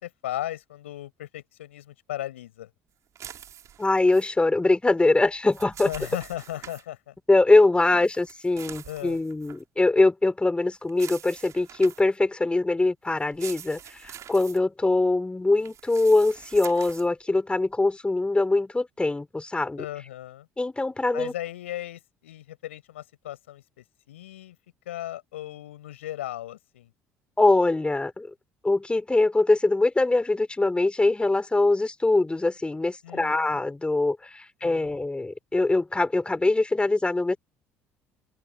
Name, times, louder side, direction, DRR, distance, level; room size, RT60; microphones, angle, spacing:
voice 1, 0.0-2.7 5.8-7.1 7.9-8.0 8.8-9.2 19.8-20.5 21.1-24.6 24.9-26.9 33.0-33.6 34.6-35.0, left 13 dB, 80° left, 7.8 m, -37 dB
sound 1, 3.2-4.3 5.3-6.8 8.0-9.6 10.9-12.2 13.2-14.6 15.6-17.1, right 10 dB, 50° right, 6.2 m, -44 dB
voice 2, 3.8-5.9 7.3-19.8 20.6-21.3 27.4-28.3 28.6-37.4, left 2 dB, 15° left, 5.1 m, -23 dB
open air
hypercardioid pair, 55°, 7 cm